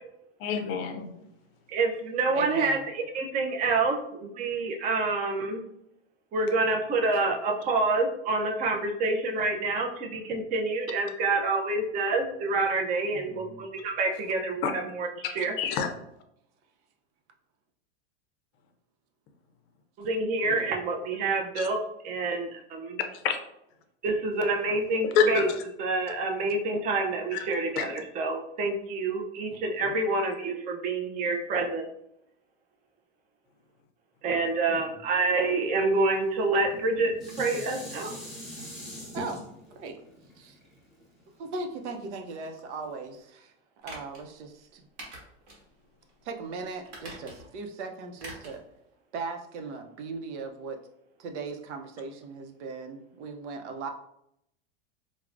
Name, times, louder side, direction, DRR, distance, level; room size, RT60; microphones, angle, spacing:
voice 1, 0.4-1.1 14.6-14.7 15.2-15.9 21.6-21.7 23.1-23.4 25.0-25.6 27.3-27.5 27.8-27.9 29.8-29.9, left 6 dB, 40° left, 6 dB, 0.5 m, -27 dB
voice 2, 1.7-2.8 3.1-5.7 6.3-15.1 15.3-15.5 20.0-21.8 22.0-23.0 24.0-25.5 25.8-31.8 34.2-38.2, right 3 dB, 25° right, 3 dB, 0.4 m, -27 dB
voice 3, 2.3-2.9 13.1-13.6 20.4-20.7 29.5-29.6 34.7-35.0 39.1-39.4 39.7-40.0 40.4-40.6 41.4-43.5 43.8-44.9 46.2-48.6 49.1-50.8 51.2-53.9, right 4 dB, 80° right, 5 dB, 0.7 m, -38 dB
Dishes pots and pans, 36.6-41.9 42.4-42.5, equal, ahead, 0.8 m, -42 dB
sound 1, 43.8-44.2 45.0-45.6 46.0-46.1 46.8-47.6 48.2-48.6 48.9-49.0, right 1 dB, 50° right, 1.5 m, -44 dB
4.6 x 2.1 x 2.5 m, 0.76 s
supercardioid pair, 135°, 34 cm